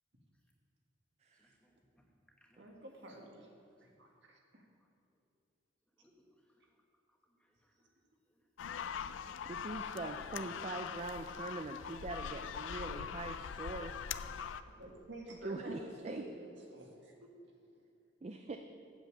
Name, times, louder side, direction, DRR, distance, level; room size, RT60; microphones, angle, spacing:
voice 1, 1.3-2.8 4.8-5.2 6.0-6.8 7.1-7.9 8.3-8.5, equal, 5° left, 0 dB, 1.0 m, -71 dB
voice 2, 2.6-3.5 3.8-4.7 14.7-17.3, right 1 dB, 75° right, 0 dB, 1.7 m, -50 dB
sound 1, 8.6-14.6, left 7 dB, 90° left, 0.4 m, -42 dB
voice 3, 9.4-14.0 15.4-16.2 18.2-18.6, right 2 dB, 35° right, 5 dB, 0.4 m, -42 dB
8.1 x 7.2 x 7.5 m, 2.4 s
head